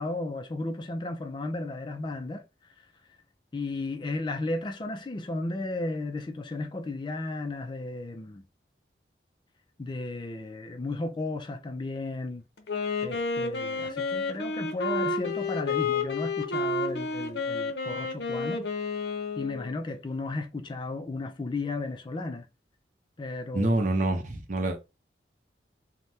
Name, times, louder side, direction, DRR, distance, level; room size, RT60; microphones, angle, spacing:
voice 1, 0.0-2.7 3.5-8.4 9.8-12.4 13.0-18.7 19.4-22.5 23.2-23.8, left 2 dB, 25° left, 0.3 m, -34 dB
Wind instrument woodwind instrument, 12.6-19.7, left 3 dB, 65° left, 0.6 m, -30 dB
voice 2, 23.5-24.9, right 2 dB, 45° right, 0.6 m, -26 dB
3.2 x 2.1 x 2.7 m
head